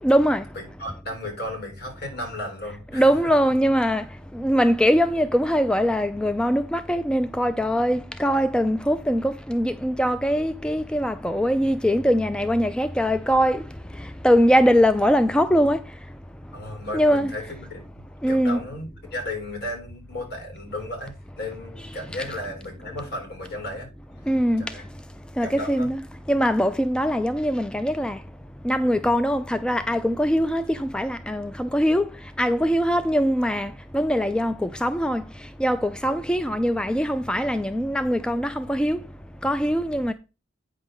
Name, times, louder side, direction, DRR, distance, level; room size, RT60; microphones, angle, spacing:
voice 1, 0.0-0.4 2.9-4.0 4.3-13.6 14.2-15.8 16.9-17.3 18.2-18.6 24.3-24.6 25.4-26.0 26.3-28.2 28.6-32.1 32.4-35.2 35.6-39.0 39.4-40.1, equal, 5° left, 0.3 m, -22 dB
voice 2, 0.5-3.1 16.5-17.8 18.3-23.9 24.6-24.9 25.4-25.9 36.1-36.3, left 1 dB, 55° left, 3.4 m, -34 dB
8.8 x 3.6 x 6.4 m
head